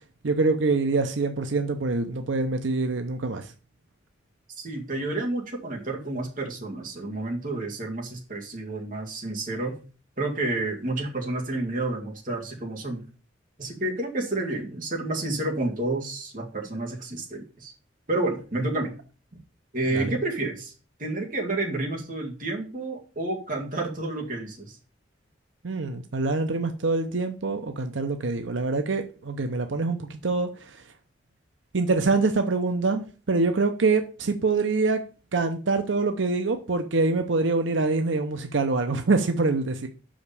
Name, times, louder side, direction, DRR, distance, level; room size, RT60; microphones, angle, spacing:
voice 1, 0.2-3.5 19.9-20.2 25.6-30.8 31.7-35.0 35.3-39.9, right 3 dB, 90° right, 0.7 m, -25 dB
voice 2, 4.6-9.8 10.2-13.1 13.6-17.7 18.1-18.9 19.7-20.7 21.0-24.8, right 2 dB, 45° right, 2.0 m, -30 dB
6.0 x 5.1 x 6.8 m
head